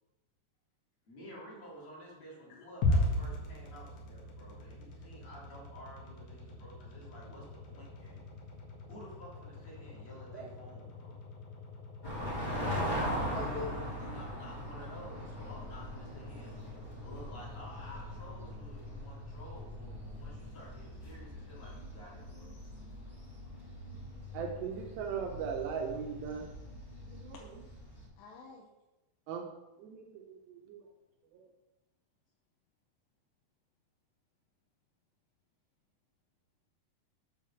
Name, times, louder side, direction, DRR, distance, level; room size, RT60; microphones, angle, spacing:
voice 1, 1.1-8.2 8.9-11.2 14.0-16.6 17.0-22.6 23.5-23.6, equal, 35° left, -6 dB, 3.4 m, -51 dB
sound 1, 2.8-21.0, left 1 dB, 55° left, 2.6 m, -40 dB
sound 2, 12.0-28.1, equal, 15° left, 2.3 m, -41 dB
voice 2, 13.0-13.9 15.7-15.8 21.6-21.7 27.3-27.4 28.2-28.7, left 5 dB, 80° left, -1 dB, 3.0 m, -45 dB
voice 3, 24.3-26.5 27.1-27.6 29.3-29.5 29.8-30.9 31.3-31.5, right 6 dB, 80° right, 1 dB, 2.8 m, -39 dB
7.5 x 4.8 x 7.0 m, 1.0 s
omnidirectional pair, 5.0 m